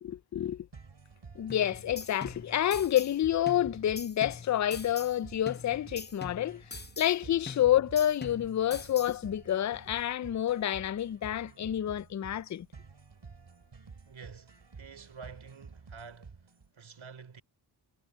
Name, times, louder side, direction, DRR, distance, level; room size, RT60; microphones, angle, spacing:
voice 1, 0.0-0.7 1.4-6.6 7.0-12.7, left 11 dB, 40° left, 0.4 m, -29 dB
sound 1, 0.7-16.7, right 5 dB, 65° right, 5.9 m, -51 dB
sound 2, 1.5-3.2 3.5-5.2 5.5-7.2 7.5-9.2, left 4 dB, 20° left, 0.8 m, -44 dB
voice 2, 14.1-16.5 16.7-17.4, right 5 dB, 80° right, 3.6 m, -49 dB
cardioid pair, 55°, 46 cm